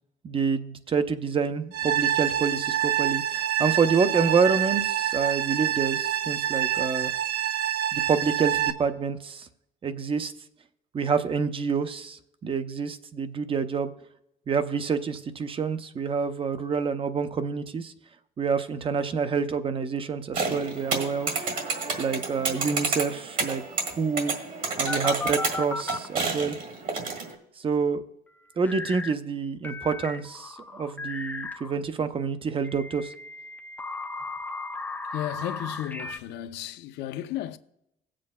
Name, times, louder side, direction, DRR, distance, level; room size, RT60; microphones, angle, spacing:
voice 1, 0.2-7.1 7.9-9.5 9.8-10.3 10.9-13.9 14.5-17.9 18.4-21.5 22.0-24.3 24.8-26.6 27.6-28.0 28.6-33.1, right 5 dB, 30° right, 0.6 m, -27 dB
sound 1, 1.7-8.7, right 11 dB, 80° right, 0.7 m, -27 dB
sound 2, 20.3-27.3, right 4 dB, 55° right, 1.7 m, -30 dB
sound 3, 24.8-26.1 28.6-29.1 29.6-31.7 32.6-36.2, left 3 dB, 10° left, 0.5 m, -35 dB
voice 2, 35.1-37.6, left 12 dB, 85° left, 0.5 m, -34 dB
17.0 x 7.5 x 2.2 m
cardioid pair, 110°, 17 cm